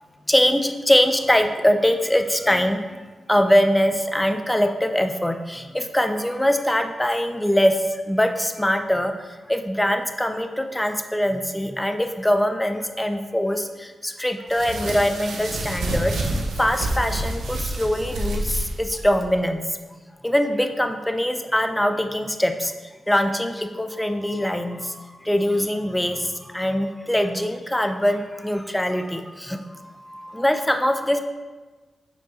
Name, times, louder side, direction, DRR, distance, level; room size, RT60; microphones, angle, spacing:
voice 1, 0.3-2.8 3.3-7.7 8.1-9.1 9.5-13.6 14.0-16.1 16.6-18.4 18.8-19.6 20.2-22.7 23.1-24.8 25.3-26.2 26.5-29.2 29.5-29.6 30.3-31.2, equal, 10° left, 6 dB, 0.6 m, -22 dB
sound 1, 14.5-19.3, right 1 dB, 85° right, 0.9 m, -28 dB
5.5 x 4.6 x 4.2 m, 1.3 s
cardioid pair, 65°, 0 cm